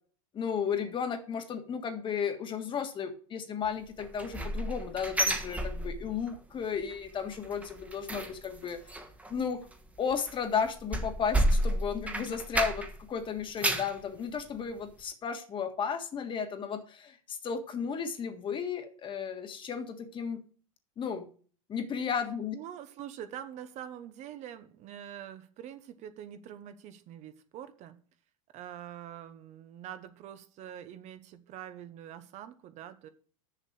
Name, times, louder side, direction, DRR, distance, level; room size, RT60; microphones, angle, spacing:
voice 1, 0.3-8.8 9.3-9.7 10.0-20.4 21.0-21.3 21.7-22.6, left 6 dB, 30° left, 7 dB, 1.6 m, -34 dB
sound 1, 4.0-6.3 6.6-7.0 7.3-13.1 13.4-14.0 14.5-14.6 15.0-15.1, right 1 dB, 10° right, 1.3 m, -31 dB
voice 2, 22.5-28.0 28.5-33.1, right 10 dB, 40° right, 11 dB, 1.1 m, -45 dB
6.9 x 6.6 x 7.3 m, 0.42 s
supercardioid pair, 115°, 18 cm